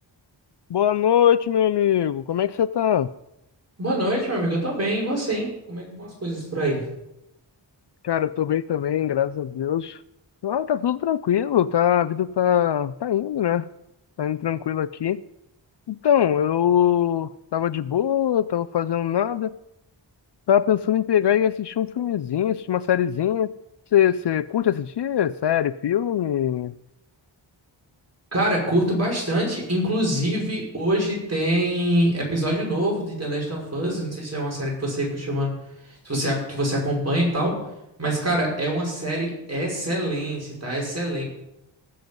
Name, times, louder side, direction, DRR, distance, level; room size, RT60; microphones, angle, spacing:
voice 1, 0.7-3.1 8.0-10.0 10.4-13.7 14.2-15.2 15.9-19.5 20.5-23.5 23.9-26.7, left 10 dB, 65° left, 17 dB, 0.5 m, -22 dB
voice 2, 3.8-6.9 28.3-35.5 36.0-37.6 38.0-41.2, right 1 dB, 35° right, -3 dB, 5.6 m, -25 dB
18.5 x 7.8 x 5.3 m, 0.86 s
wide cardioid pair, 80°, 46 cm